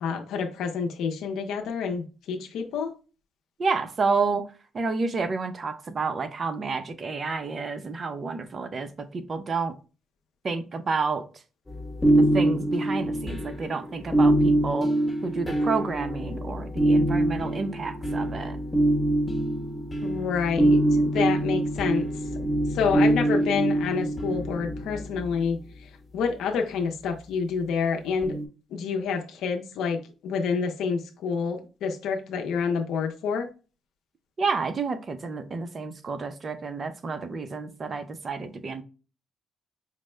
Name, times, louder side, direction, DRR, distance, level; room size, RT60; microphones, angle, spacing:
voice 1, 0.0-2.9 20.0-22.1 22.7-28.4 28.7-33.5, left 5 dB, 80° left, 0.5 m, -28 dB
voice 2, 3.6-4.5 4.7-9.7 10.4-11.3 12.2-14.9 15.2-18.6 34.4-38.8, right 4 dB, 40° right, 0.6 m, -30 dB
sound 1, 11.7-25.5 28.2-28.4, right 1 dB, 15° left, 1.0 m, -24 dB
4.9 x 2.1 x 3.2 m
cardioid pair, 90°, 0 cm